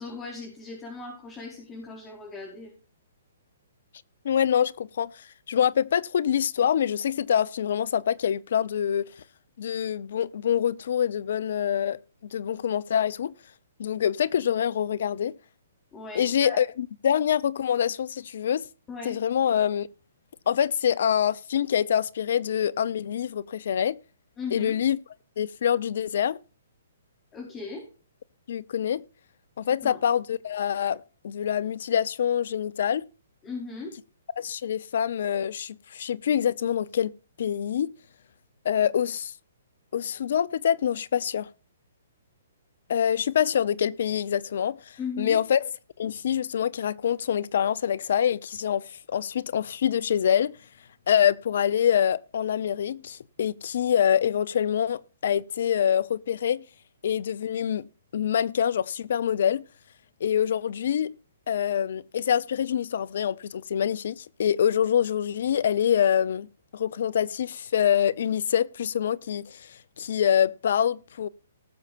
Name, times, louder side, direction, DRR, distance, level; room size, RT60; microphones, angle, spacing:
voice 1, 0.0-2.7 15.9-16.6 18.9-19.2 24.4-24.8 27.3-27.9 29.8-30.0 33.4-33.9 45.0-45.4, left 4 dB, 20° left, 4.6 m, -37 dB
voice 2, 4.2-9.1 9.6-12.0 12.3-13.3 13.8-15.3 16.1-18.6 19.0-19.9 20.5-24.0 24.5-25.0 25.4-26.4 28.5-29.0 29.6-33.0 34.4-37.1 37.4-37.9 38.6-39.3 39.9-41.5 42.9-45.6 46.0-50.5 51.1-56.6 57.0-59.6 60.2-61.1 61.5-66.5 66.7-71.3, left 9 dB, 65° left, 0.8 m, -25 dB
19.5 x 7.4 x 2.6 m
hypercardioid pair, 135°, 0 cm